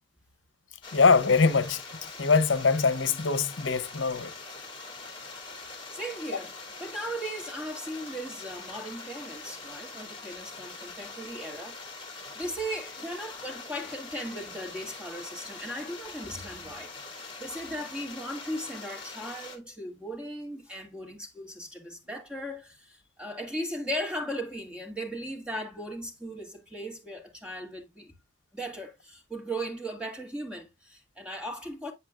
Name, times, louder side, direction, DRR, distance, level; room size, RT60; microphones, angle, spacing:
sound 1, 0.8-19.6, left 3 dB, 25° left, 2.6 m, -43 dB
voice 1, 0.9-1.8 2.2-4.3, left 4 dB, 75° left, 0.7 m, -23 dB
voice 2, 5.6-11.8 12.1-28.1 28.5-31.9, equal, 5° right, 2.3 m, -37 dB
8.1 x 7.5 x 2.4 m
head